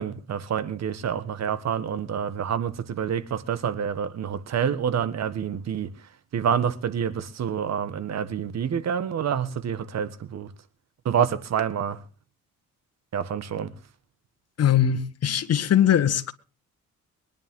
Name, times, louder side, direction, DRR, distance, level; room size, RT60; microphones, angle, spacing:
voice 1, 0.0-5.9 6.3-10.5 11.0-12.0 13.1-13.7, right 8 dB, 60° right, 1.6 m, -27 dB
voice 2, 14.6-16.3, left 9 dB, 55° left, 1.6 m, -21 dB
23.0 x 10.5 x 3.8 m
cardioid pair, 90°, 30 cm